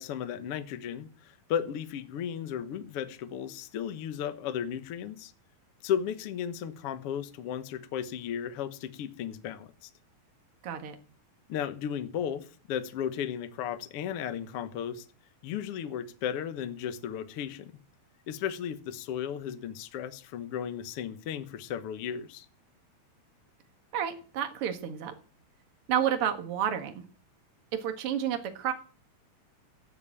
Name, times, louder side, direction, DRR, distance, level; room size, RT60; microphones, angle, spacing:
voice 1, 0.0-5.3 5.8-9.9 11.5-15.0 15.4-17.8 18.3-22.5, left 9 dB, 65° left, 1.5 m, -35 dB
voice 2, 10.6-11.0 23.9-25.1 25.9-27.0 27.7-28.7, right 9 dB, 50° right, 2.1 m, -30 dB
15.5 x 7.1 x 8.5 m
omnidirectional pair, 4.2 m